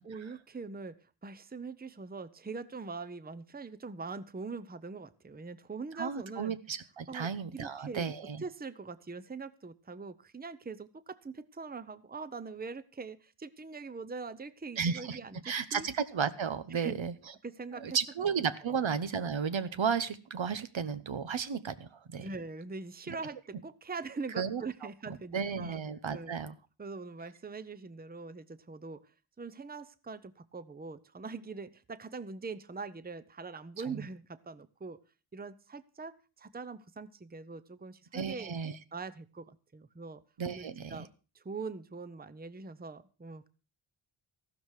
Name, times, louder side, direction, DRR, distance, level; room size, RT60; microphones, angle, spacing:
voice 1, 0.0-6.6 7.1-8.1 8.4-15.9 16.7-17.0 17.4-18.0 18.7-18.8 22.2-25.8 26.1-26.4 26.8-29.1 29.4-35.0 35.3-38.5 38.9-40.2 40.5-41.1 41.3-43.5, right 4 dB, 20° right, 15 dB, 0.7 m, -42 dB
voice 2, 6.0-8.4 14.8-15.2 15.4-17.1 17.7-22.3 23.1-23.2 24.4-24.6 25.3-26.5 33.9-34.0 38.1-38.8 40.4-41.0, right 6 dB, 70° right, 12 dB, 1.0 m, -33 dB
14.5 x 12.5 x 4.8 m, 0.34 s
wide cardioid pair, 80°, 49 cm